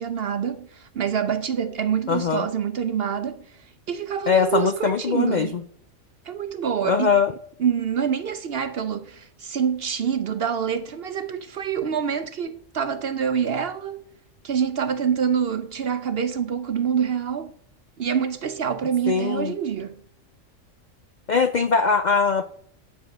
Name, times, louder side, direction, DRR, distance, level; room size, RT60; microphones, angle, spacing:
voice 1, 0.0-3.5 3.9-5.5 6.3-7.1 7.6-14.1 14.4-17.5 18.0-20.0, right 7 dB, 55° right, 0.7 m, -26 dB
voice 2, 2.1-2.5 4.3-5.5 6.8-7.3 19.1-19.5 21.3-22.5, left 5 dB, 60° left, 0.4 m, -21 dB
9.3 x 8.0 x 6.0 m
omnidirectional pair, 1.4 m